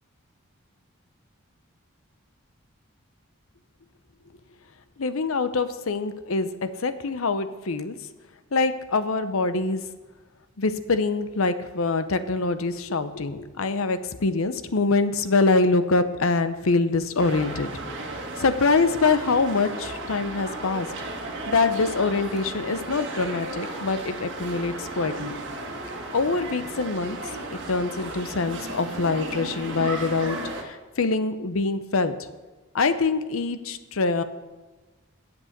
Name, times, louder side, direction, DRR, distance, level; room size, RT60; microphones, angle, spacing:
voice 1, 5.0-7.9 8.5-9.8 10.6-17.7 18.1-20.9 21.5-25.4 26.1-27.2 27.5-32.1 32.7-34.2, left 3 dB, 80° left, 11 dB, 0.7 m, -24 dB
sound 1, 17.2-30.6, right 2 dB, 55° right, 1.7 m, -35 dB
10.0 x 8.0 x 6.6 m, 1.2 s
head